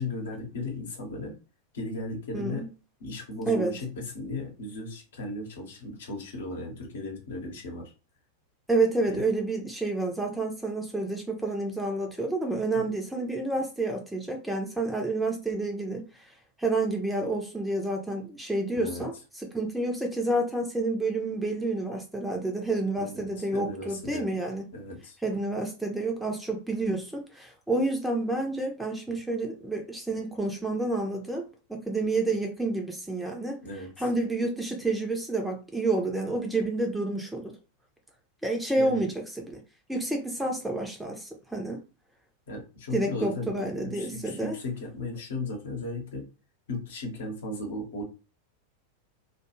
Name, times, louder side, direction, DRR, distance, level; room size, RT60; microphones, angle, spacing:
voice 1, 0.0-1.4 1.7-2.7 3.0-7.9 9.1-9.2 18.7-19.1 23.0-24.3 24.7-25.2 33.6-33.9 38.8-39.0 42.5-46.3 46.7-48.0, left 2 dB, 60° left, 0.9 m, -36 dB
voice 2, 2.3-2.7 3.5-3.7 8.7-16.0 16.6-19.1 19.4-24.7 25.2-33.6 34.0-37.5 38.4-39.6 39.9-41.8 42.9-44.6, right 2 dB, 5° right, 0.6 m, -29 dB
2.3 x 2.3 x 3.0 m
figure-of-eight pair, 90°, 0 cm